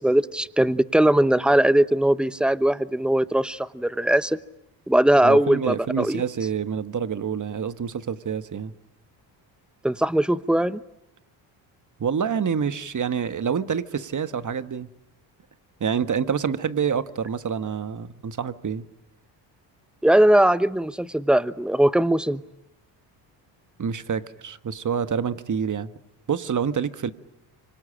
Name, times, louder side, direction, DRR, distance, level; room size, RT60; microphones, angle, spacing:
voice 1, 0.0-4.4 4.9-6.2 9.8-10.8 20.0-22.4, right 1 dB, ahead, 15 dB, 0.9 m, -20 dB
voice 2, 5.2-8.7 12.0-14.9 15.8-18.8 23.8-25.9 26.3-27.1, right 7 dB, 35° right, 12 dB, 1.5 m, -27 dB
25.5 x 25.0 x 8.8 m, 0.85 s
supercardioid pair, 70°, 49 cm